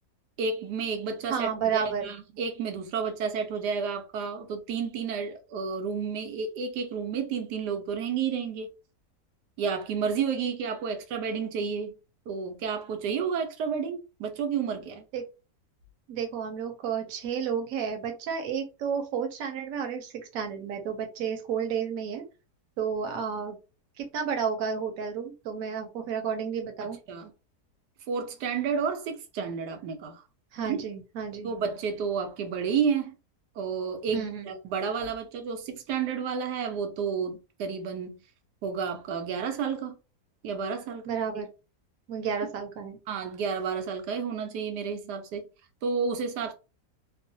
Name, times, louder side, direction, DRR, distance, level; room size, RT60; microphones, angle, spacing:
voice 1, 0.4-8.7 9.6-11.9 12.3-15.0 27.1-27.3 28.1-30.2 30.6-30.8 31.4-33.2 33.6-38.2 38.6-40.0 40.4-41.4 43.1-45.5 45.8-46.5, right 6 dB, 85° right, 1.2 m, -31 dB
voice 2, 1.3-2.1 15.1-15.3 16.1-22.2 22.8-23.6 24.0-27.0 30.5-31.5 34.1-34.5 41.1-41.5 42.1-43.0, right 7 dB, 65° right, 1.0 m, -31 dB
3.0 x 2.0 x 2.7 m
omnidirectional pair, 1.7 m